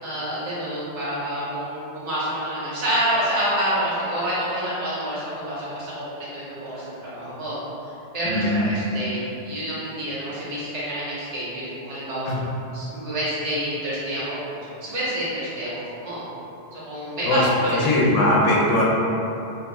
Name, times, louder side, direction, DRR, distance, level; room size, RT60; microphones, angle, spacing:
voice 1, 0.0-7.6 7.8-12.4 12.7-16.2 16.7-17.9, right 1 dB, 65° right, -9 dB, 1.4 m, -28 dB
voice 2, 8.2-8.7 12.3-12.4 17.2-17.4 17.8-18.8, left 1 dB, 80° left, -5 dB, 1.1 m, -20 dB
3.4 x 3.0 x 3.0 m, 2.9 s
omnidirectional pair, 1.3 m